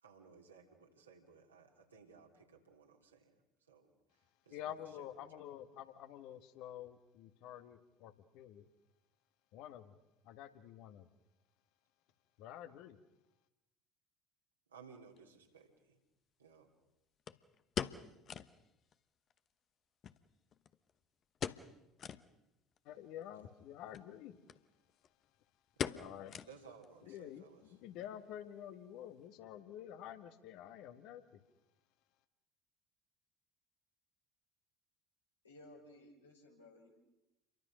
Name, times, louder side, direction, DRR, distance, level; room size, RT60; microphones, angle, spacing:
voice 1, 0.0-5.4 14.7-16.0 16.4-16.7 23.4-23.6 25.7-26.0 26.5-27.8, right 5 dB, 80° right, 0 dB, 3.4 m, -60 dB
voice 2, 4.5-8.7 9.5-10.0 10.2-11.1 12.4-13.0 22.8-24.4 25.9-26.4 27.1-31.4, left 11 dB, 55° left, 10 dB, 1.6 m, -49 dB
sound 1, 15.2-15.3 17.3-18.6 18.9-19.0 19.3-19.4 20.0-20.9 21.4-21.7 22.0-22.3 22.8-22.9 23.8-24.1 24.5-24.6 24.9-25.2 25.8-26.9 27.2-27.3 27.8-28.2 28.5-28.6, left 8 dB, 40° left, 1.0 m, -42 dB
voice 3, 35.4-36.9, left 1 dB, 85° left, -2 dB, 5.5 m, -58 dB
29.0 x 23.5 x 6.4 m, 0.93 s
figure-of-eight pair, 65°, 0 cm